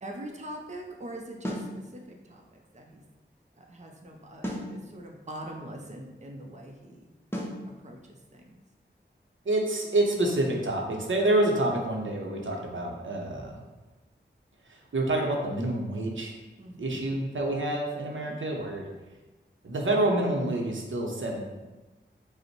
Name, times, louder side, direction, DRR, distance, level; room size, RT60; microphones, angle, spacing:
voice 1, 0.0-2.0 2.3-2.4 2.7-3.0 3.6-7.1 7.8-8.5 16.6-17.0 18.0-18.4, right 1 dB, 35° right, 1 dB, 0.6 m, -43 dB
sound 1, 1.4-1.7 4.4-4.7 7.3-7.6, equal, 10° left, 0.7 m, -33 dB
voice 2, 9.5-13.6 14.7-16.4 16.8-18.9 19.6-21.4, right 1 dB, 85° right, 1 dB, 0.7 m, -27 dB
5.2 x 2.1 x 4.4 m, 1.1 s
wide cardioid pair, 75°, 20 cm